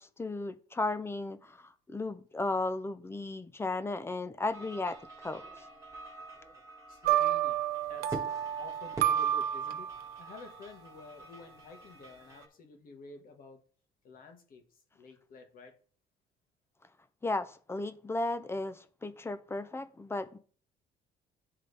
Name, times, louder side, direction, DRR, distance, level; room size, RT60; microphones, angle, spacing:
voice 1, 0.0-5.0 5.2-5.4 17.2-20.4, left 2 dB, 15° left, 0.6 m, -35 dB
sound 1, 4.5-12.5, right 2 dB, 20° right, 1.6 m, -47 dB
voice 2, 6.9-7.6 7.9-8.2 8.6-9.9 10.2-13.6 14.0-14.6 14.9-15.7, left 3 dB, 55° left, 1.7 m, -50 dB
sound 2, 7.0-10.3, right 11 dB, 70° right, 0.5 m, -30 dB
10.0 x 3.7 x 3.4 m
cardioid pair, 110°, 17 cm